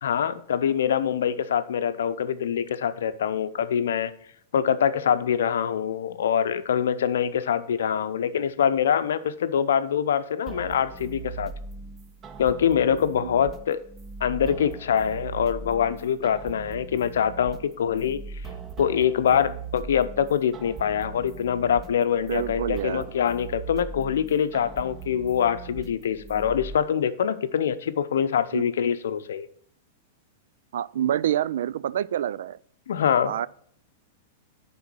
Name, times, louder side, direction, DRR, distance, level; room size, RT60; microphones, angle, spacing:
voice 1, 0.0-4.1 4.5-11.5 12.4-13.8 14.2-18.2 18.8-29.5 32.9-33.3, left 8 dB, 80° left, 0.6 m, -24 dB
sound 1, 10.5-26.8, right 5 dB, 25° right, 0.6 m, -40 dB
voice 2, 22.3-23.0 28.5-28.6 30.7-32.6 33.3-33.5, right 11 dB, 75° right, 0.3 m, -27 dB
9.4 x 3.8 x 6.1 m
hypercardioid pair, 115°, 0 cm